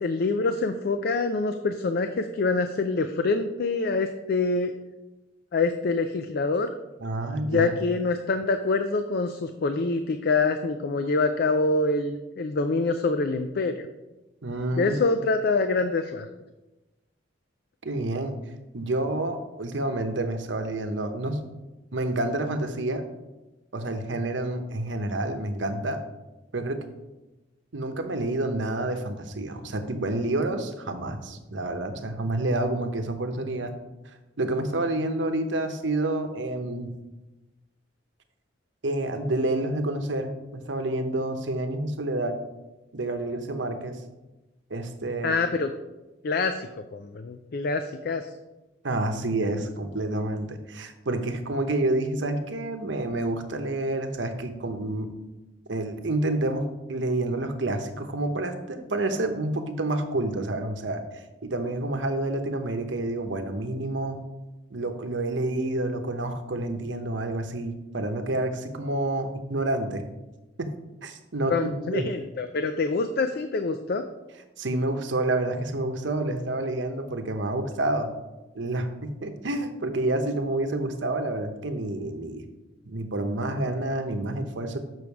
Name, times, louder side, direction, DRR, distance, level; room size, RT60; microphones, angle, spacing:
voice 1, 0.0-4.7 5.5-6.7 7.5-13.9 14.8-16.3 45.2-45.7 46.2-48.3 71.5-74.1, left 3 dB, 55° left, 8 dB, 0.4 m, -25 dB
voice 2, 7.0-7.7 14.4-15.0 17.8-18.3 18.7-21.4 21.9-23.0 23.7-26.0 26.5-26.8 27.7-33.7 34.4-36.9 38.8-40.3 40.6-42.4 42.9-44.0 44.7-45.4 48.8-55.1 55.7-61.0 61.4-64.2 64.7-70.0 70.6-70.7 71.0-72.0 74.6-78.1 78.5-82.4 82.9-84.8, right 2 dB, 80° right, 7 dB, 0.9 m, -28 dB
7.1 x 6.2 x 4.7 m, 1.1 s
head